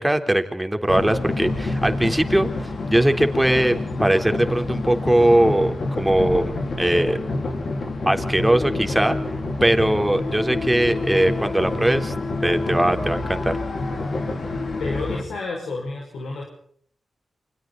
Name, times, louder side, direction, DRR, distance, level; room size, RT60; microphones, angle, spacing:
voice 1, 0.0-3.7 4.0-7.2 8.1-9.2 9.6-12.1 12.4-13.5, right 1 dB, 10° right, 6 dB, 3.5 m, -20 dB
sound 1, 0.9-15.2, left 2 dB, 60° left, 4.3 m, -27 dB
voice 2, 14.8-16.4, left 3 dB, 85° left, 0 dB, 5.8 m, -30 dB
29.0 x 26.0 x 4.1 m, 0.62 s
cardioid pair, 65°, 0 cm